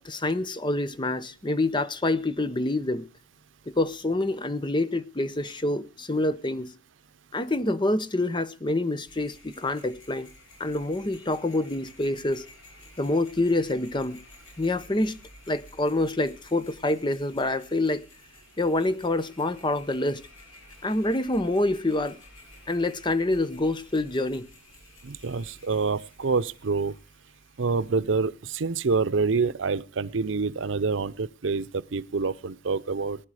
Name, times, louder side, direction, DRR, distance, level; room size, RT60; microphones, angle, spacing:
voice 1, 0.0-3.1 3.7-6.7 7.3-10.3 10.6-12.5 13.0-14.2 14.6-15.2 15.5-18.0 18.6-20.2 20.8-22.2 22.7-24.5, left 2 dB, 25° left, 0.8 m, -26 dB
sound 1, 9.1-27.9, left 2 dB, 90° left, 4.1 m, -52 dB
voice 2, 25.0-26.9 27.6-33.2, right 4 dB, 85° right, 0.6 m, -27 dB
19.0 x 10.5 x 4.9 m
head